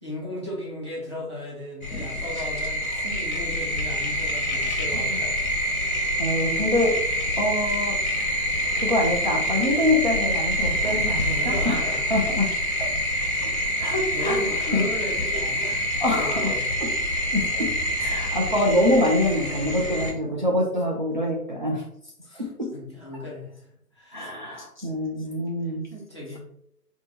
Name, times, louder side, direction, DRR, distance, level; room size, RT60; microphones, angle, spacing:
voice 1, 0.0-5.4 10.8-12.1 12.6-12.7 13.1-16.8 22.2-22.4 22.7-24.7 25.9-26.4, left 1 dB, 20° left, -7 dB, 0.5 m, -37 dB
sound 1, 1.8-20.1, equal, 60° left, 0.8 m, -26 dB
voice 2, 6.2-6.9 7.4-8.0 8.8-12.5 12.8-12.9 13.4-13.5 13.8-14.4 14.7-14.8 16.0-16.5 17.3-17.7 18.0-21.8 22.4-22.7 24.1-25.9, left 1 dB, 35° right, -3 dB, 0.4 m, -25 dB
4.4 x 2.2 x 2.8 m, 0.71 s
figure-of-eight pair, 135°, 48 cm